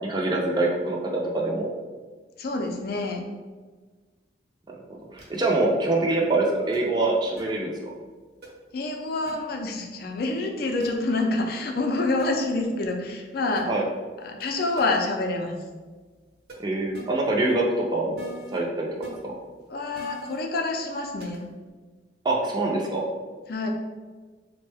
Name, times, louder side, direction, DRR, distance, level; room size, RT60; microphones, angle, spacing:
voice 1, 0.0-1.7 5.1-7.9 13.7-13.8 16.6-17.7 17.9-18.2 18.5-19.3 22.2-23.0, right 2 dB, 25° right, -1 dB, 0.5 m, -25 dB
voice 2, 2.4-3.3 8.7-13.7 14.2-15.6 19.7-21.4 23.5-23.7, left 2 dB, 55° left, 3 dB, 0.4 m, -27 dB
sound 1, 5.2-5.4 6.7-6.8 7.4-7.5 8.4-8.5 9.3-9.4 10.8-10.9 12.2-12.3 13.5-13.6 14.4-14.5 14.8-14.9 16.5-16.6 16.9-17.0 18.2-18.6 19.0-19.1 19.9-20.4 21.2-21.4, equal, 60° right, 0.8 m, -43 dB
3.5 x 2.1 x 3.3 m, 1.4 s
head